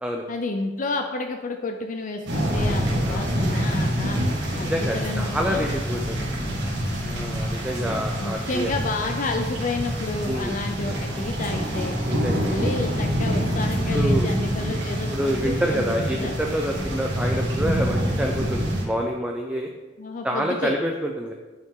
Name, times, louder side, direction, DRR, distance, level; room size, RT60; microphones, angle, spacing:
voice 1, 0.3-4.2 4.6-5.6 7.0-7.4 8.2-12.0 12.4-16.3 20.0-20.8, left 3 dB, 45° left, 5 dB, 0.5 m, -30 dB
sound 1, 2.3-18.8, equal, 70° right, 1.9 m, -26 dB
voice 2, 4.6-6.2 7.1-8.7 10.2-10.5 12.0-12.4 13.9-14.3 15.1-19.7 20.2-21.3, equal, 5° right, 1 dB, 0.5 m, -27 dB
8.6 x 5.7 x 3.7 m, 1.3 s
head